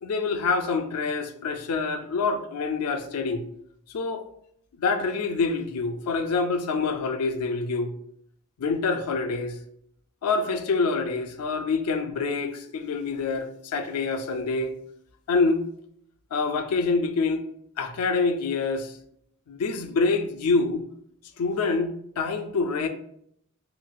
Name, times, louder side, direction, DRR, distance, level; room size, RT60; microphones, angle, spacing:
voice 1, 0.0-3.5 3.9-4.3 4.8-7.9 8.6-9.6 10.2-14.8 15.3-15.6 16.3-17.4 17.8-18.9 19.5-20.8 21.4-22.9, left 4 dB, 85° left, 0.4 m, -26 dB
3.9 x 2.6 x 2.3 m
head